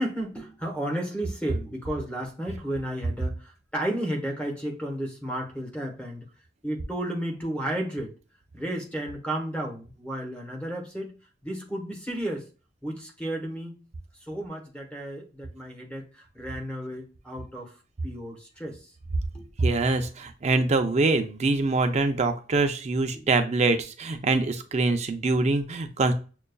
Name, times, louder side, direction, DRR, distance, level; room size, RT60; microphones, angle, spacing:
voice 1, 0.0-6.2 6.6-8.1 8.5-11.1 11.4-12.5 12.8-13.8 14.3-17.8 18.0-18.8 19.3-19.5 23.1-23.3, right 1 dB, 5° left, 1 dB, 1.0 m, -33 dB
voice 2, 19.6-26.1, right 3 dB, 35° right, 7 dB, 0.5 m, -24 dB
6.4 x 2.3 x 2.3 m, 0.36 s
head